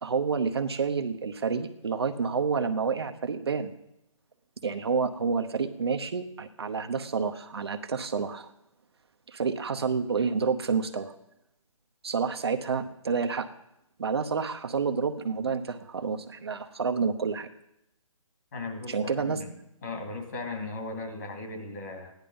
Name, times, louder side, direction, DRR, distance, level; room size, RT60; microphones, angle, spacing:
voice 1, 0.0-3.7 4.6-8.5 9.3-11.1 12.0-13.5 14.0-17.5 18.9-19.4, right 5 dB, 50° right, 7 dB, 0.9 m, -29 dB
voice 2, 18.5-19.5 19.8-22.1, left 3 dB, 30° left, 2 dB, 2.4 m, -37 dB
15.5 x 10.5 x 5.4 m, 0.83 s
hypercardioid pair, 170°, 18 cm